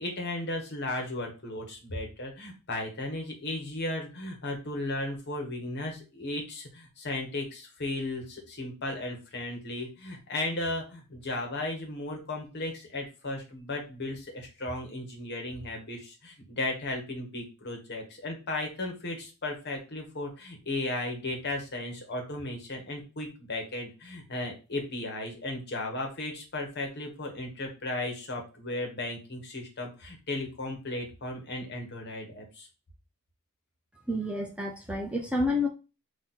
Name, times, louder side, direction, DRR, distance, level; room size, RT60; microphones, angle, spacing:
voice 1, 0.0-32.7, left 2 dB, 50° left, 2 dB, 1.3 m, -35 dB
voice 2, 34.1-35.7, left 2 dB, 5° right, 1 dB, 0.4 m, -29 dB
4.0 x 2.8 x 4.3 m, 0.31 s
head